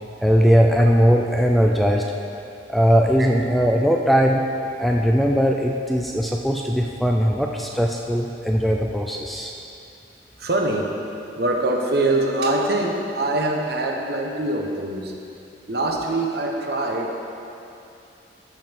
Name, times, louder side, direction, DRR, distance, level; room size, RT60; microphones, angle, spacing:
voice 1, 0.2-2.0 2.7-4.4 4.8-9.5, equal, ahead, 0 dB, 0.3 m, -19 dB
voice 2, 10.4-10.9 11.3-15.1 15.7-17.2, right 2 dB, 55° right, 1 dB, 1.0 m, -23 dB
13.0 x 5.6 x 4.6 m, 2.7 s
head